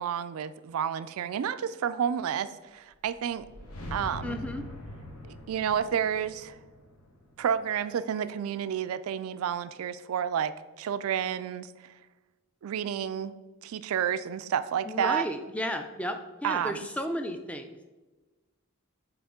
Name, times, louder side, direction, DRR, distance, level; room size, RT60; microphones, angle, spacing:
voice 1, 0.0-3.5 3.9-4.4 5.2-6.6 7.4-11.7 12.6-13.3 13.6-15.3 16.4-16.9, right 8 dB, 75° right, 14 dB, 0.3 m, -30 dB
sound 1, 3.0-8.1, left 1 dB, 75° left, 0.9 m, -43 dB
voice 2, 4.2-4.6 14.9-17.8, equal, 5° left, 7 dB, 0.3 m, -33 dB
7.8 x 3.4 x 3.6 m, 1.2 s
head